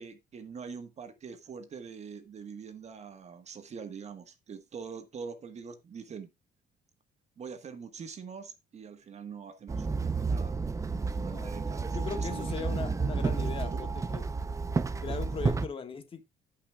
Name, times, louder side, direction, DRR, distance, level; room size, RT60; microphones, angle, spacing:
voice 1, 0.0-6.3 7.4-10.5 11.1-12.8 13.3-13.9, right 6 dB, 40° right, 1.4 m, -44 dB
Walk footsteps / Chatter / Hiss, 9.7-15.7, right 4 dB, 20° right, 0.6 m, -31 dB
voice 2, 10.9-11.5 11.9-14.2 15.0-16.2, left 6 dB, 30° left, 1.6 m, -39 dB
17.5 x 5.8 x 2.3 m
cardioid pair, 110°, 17 cm